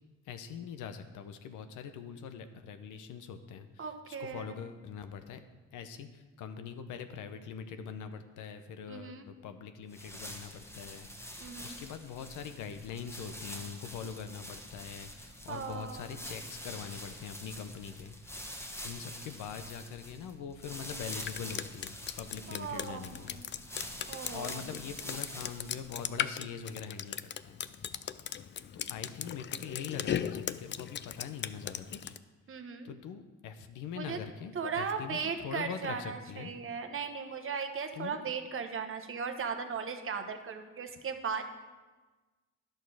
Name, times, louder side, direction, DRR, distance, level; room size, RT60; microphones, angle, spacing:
voice 1, 0.3-5.4 5.7-18.5 18.8-23.4 24.3-27.2 27.4-27.6 28.3-28.4 28.7-32.1 32.8-36.5 37.9-38.2, left 7 dB, 85° left, 9 dB, 0.8 m, -43 dB
voice 2, 3.8-4.5 8.9-9.3 11.4-11.8 15.5-16.1 22.5-23.5 24.1-24.6 32.5-32.9 33.9-34.2 34.5-41.4, right 6 dB, 45° right, 6 dB, 1.0 m, -37 dB
sound 1, 9.9-26.4, equal, 10° left, 1.3 m, -46 dB
Drip, 20.9-32.2, left 9 dB, 40° left, 0.4 m, -38 dB
10.5 x 6.6 x 4.8 m, 1.3 s
cardioid pair, 90°, 30 cm